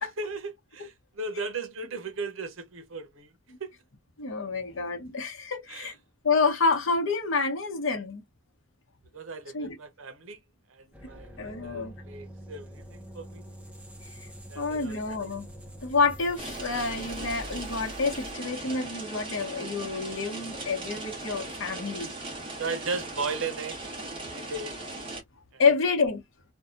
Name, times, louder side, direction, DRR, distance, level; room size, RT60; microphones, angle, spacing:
voice 1, 0.0-3.3 3.6-3.7 5.7-5.9 9.1-10.4 10.7-13.4 14.5-15.0 22.6-23.8 24.1-24.8 25.5-25.6, right 3 dB, 85° right, 0.7 m, -36 dB
voice 2, 4.2-5.9 6.2-8.2 9.5-9.8 11.4-11.9 14.1-14.3 14.6-15.4 15.8-22.1 25.6-26.2, left 4 dB, 75° left, 0.9 m, -28 dB
sound 1, 10.9-18.3, equal, 5° right, 0.6 m, -45 dB
sound 2, 16.4-25.2, right 2 dB, 25° right, 1.1 m, -38 dB
2.7 x 2.3 x 2.5 m
head